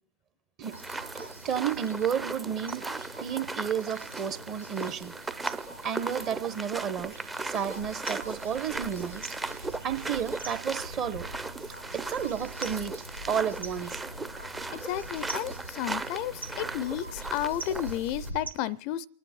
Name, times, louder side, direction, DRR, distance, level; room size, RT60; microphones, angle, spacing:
sound 1, 0.6-18.3, right 3 dB, 15° right, 0.6 m, -38 dB
sound 2, 0.7-18.5, right 1 dB, 85° right, 0.9 m, -44 dB
voice 1, 1.1-2.9 3.2-5.1 5.4-5.5 5.8-7.2 7.4-11.3 11.9-13.0 13.3-14.0, right 8 dB, 35° right, 1.0 m, -32 dB
voice 2, 14.7-19.1, left 12 dB, 45° left, 0.4 m, -32 dB
29.0 x 10.0 x 3.0 m
figure-of-eight pair, 90°, 0 cm